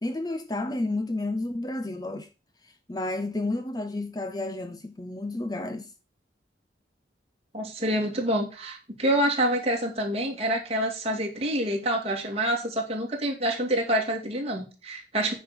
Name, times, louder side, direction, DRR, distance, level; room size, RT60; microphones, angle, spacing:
voice 1, 0.0-2.3 2.9-5.9, left 2 dB, 20° left, 0.6 m, -31 dB
voice 2, 7.5-15.3, right 1 dB, 30° right, 2.5 m, -27 dB
9.5 x 5.2 x 6.2 m
head